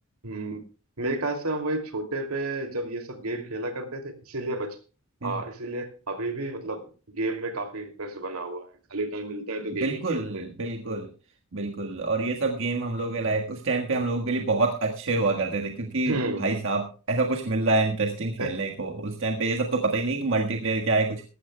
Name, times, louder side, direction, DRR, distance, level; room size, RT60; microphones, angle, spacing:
voice 1, 0.2-0.7 1.0-4.8 5.2-10.5 16.1-16.5 18.4-18.6, right 2 dB, 80° right, 6 dB, 2.6 m, -31 dB
voice 2, 9.8-11.1 11.5-16.2 16.4-21.2, right 3 dB, 60° right, 2 dB, 1.5 m, -26 dB
19.0 x 15.0 x 2.2 m, 0.35 s
head